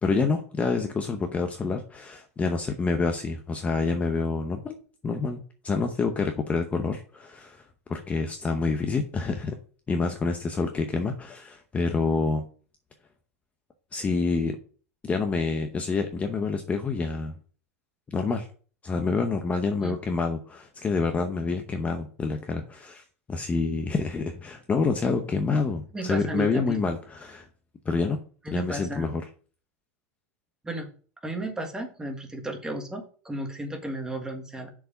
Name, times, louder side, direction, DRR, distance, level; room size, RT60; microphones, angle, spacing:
voice 1, 0.0-4.8 5.0-7.6 7.9-9.6 9.9-12.4 13.9-14.6 15.0-17.4 18.1-18.5 18.8-23.0 23.3-27.5 27.9-28.2 28.5-29.2, left 4 dB, 15° left, 5 dB, 0.8 m, -27 dB
voice 2, 25.9-26.9 28.4-29.1 30.6-30.9 31.2-34.7, right 1 dB, 10° right, 5 dB, 1.4 m, -34 dB
6.5 x 4.8 x 5.4 m, 0.40 s
supercardioid pair, 135°, 8 cm